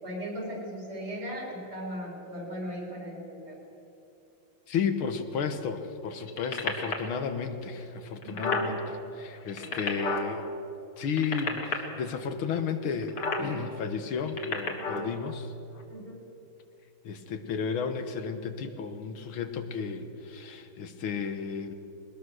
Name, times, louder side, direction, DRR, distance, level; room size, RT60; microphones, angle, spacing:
voice 1, 0.0-3.6 8.2-8.8 9.6-10.0 14.7-15.1 15.9-16.2, equal, 80° right, -2 dB, 5.5 m, -38 dB
voice 2, 4.7-8.8 9.1-10.5 11.0-15.5 17.0-21.7, left 6 dB, 85° left, 8 dB, 2.1 m, -33 dB
sound 1, 6.2-7.1 7.8-7.9 8.1-8.7 9.4-10.3 11.0-11.7 13.0-13.5 14.2-15.1 15.8-15.9, left 4 dB, 55° left, 2.5 m, -31 dB
20.5 x 20.5 x 6.4 m, 2.9 s
omnidirectional pair, 2.3 m